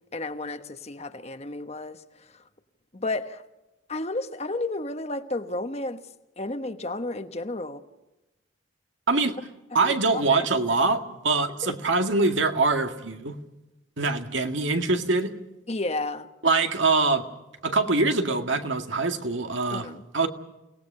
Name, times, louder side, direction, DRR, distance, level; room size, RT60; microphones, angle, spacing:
voice 1, 0.1-2.0 2.3-2.4 2.9-3.4 3.9-6.0 6.4-7.8 9.8-10.5 11.7-11.8 15.7-16.3 19.7-20.0, left 2 dB, 35° left, 1.2 m, -32 dB
voice 2, 9.7-13.4 14.0-15.3 16.4-17.2 17.6-19.9 20.1-20.3, right 3 dB, 75° right, 2.0 m, -24 dB
30.0 x 18.5 x 5.6 m
head